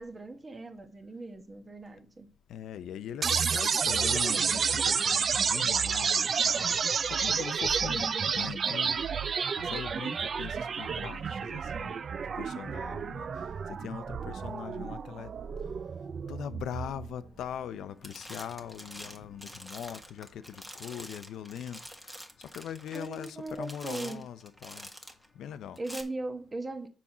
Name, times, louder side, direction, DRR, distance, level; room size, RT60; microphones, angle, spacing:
voice 1, 0.0-2.3 7.9-8.2 22.9-24.2 25.8-26.9, right 2 dB, 25° right, 1.2 m, -39 dB
voice 2, 2.5-6.7 7.1-8.1 8.3-9.0 9.6-12.0 12.4-15.3 16.3-24.9 25.4-25.8, left 9 dB, 80° left, 0.5 m, -41 dB
sound 1, 3.2-17.2, right 6 dB, 45° right, 0.3 m, -30 dB
sound 2, 17.5-17.8 18.0-25.3 25.8-26.0, equal, 5° right, 1.4 m, -46 dB
7.1 x 4.2 x 6.0 m
cardioid pair, 100°, 0 cm